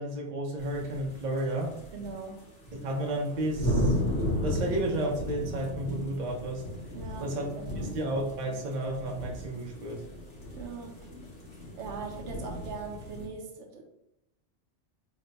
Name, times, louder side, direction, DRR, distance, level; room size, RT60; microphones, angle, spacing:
voice 1, 0.0-1.8 2.7-4.0 4.4-6.6 7.2-10.0, right 1 dB, 45° right, 0.7 m, -32 dB
sound 1, 0.6-2.3 2.6-13.3, equal, 85° left, 1.4 m, -35 dB
voice 2, 1.9-2.5 6.9-8.0 10.5-11.1 11.8-13.9, right 5 dB, 80° right, 0.9 m, -41 dB
3.3 x 2.2 x 3.8 m
omnidirectional pair, 1.2 m